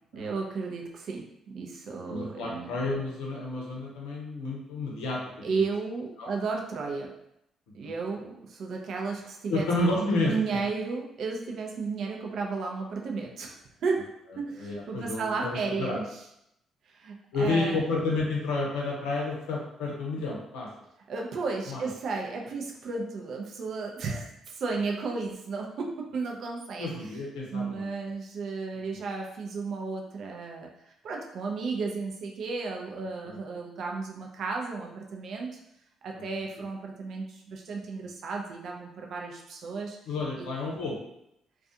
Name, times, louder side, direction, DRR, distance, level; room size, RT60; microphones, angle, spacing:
voice 1, 0.1-2.8 5.4-7.1 7.7-9.7 10.0-14.1 14.4-16.2 16.9-17.8 21.1-26.9 27.5-35.6 36.0-40.0 40.4-40.5 40.7-40.8, right 4 dB, 60° right, 0 dB, 0.5 m, -33 dB
voice 2, 2.1-5.2 6.2-6.3 7.8-7.9 9.5-10.6 14.6-16.0 17.3-20.7 21.7-21.8 26.8-28.0 28.9-29.0 33.2-33.4 36.1-36.2 40.1-41.0, left 2 dB, 75° left, -2 dB, 0.6 m, -30 dB
2.4 x 2.3 x 2.6 m, 0.79 s
hypercardioid pair, 45°, 0 cm